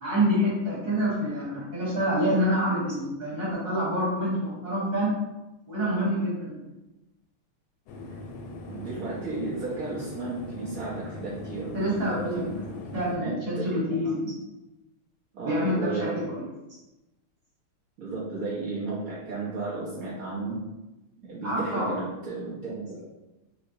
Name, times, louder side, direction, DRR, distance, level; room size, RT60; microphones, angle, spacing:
voice 1, 0.0-5.1 5.7-6.6 11.7-12.4 12.9-14.3 15.4-15.9 16.1-16.4 21.4-21.9, equal, 30° right, -7 dB, 1.3 m, -27 dB
sound 1, 7.9-13.2, left 2 dB, 80° left, 1.4 m, -41 dB
voice 2, 8.7-12.6 13.1-14.2 15.3-16.4 18.0-20.6 21.2-23.0, right 3 dB, 75° right, -7 dB, 0.8 m, -34 dB
3.2 x 2.9 x 2.6 m, 1.0 s
omnidirectional pair, 2.4 m